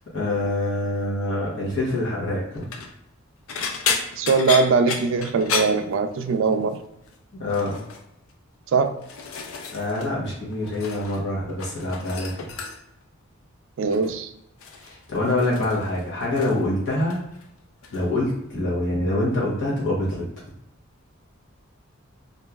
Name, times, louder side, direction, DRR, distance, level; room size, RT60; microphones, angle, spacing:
voice 1, 0.1-2.6 7.3-7.8 9.7-12.5 14.8-17.2 17.9-20.2, left 1 dB, 60° left, -6 dB, 1.0 m, -25 dB
sound 1, 2.5-2.9 3.5-6.5 6.8-7.2 7.5-8.0 8.7-10.1 10.4-11.2 11.5-13.0 13.9-14.2 14.6-16.7 16.9-17.5 17.8-18.0 19.3-19.4, left 5 dB, 75° left, 0.4 m, -32 dB
voice 2, 4.2-6.8 8.7-9.0 13.8-14.3, right 4 dB, 65° right, 8 dB, 0.3 m, -21 dB
3.0 x 2.6 x 2.3 m, 0.80 s
head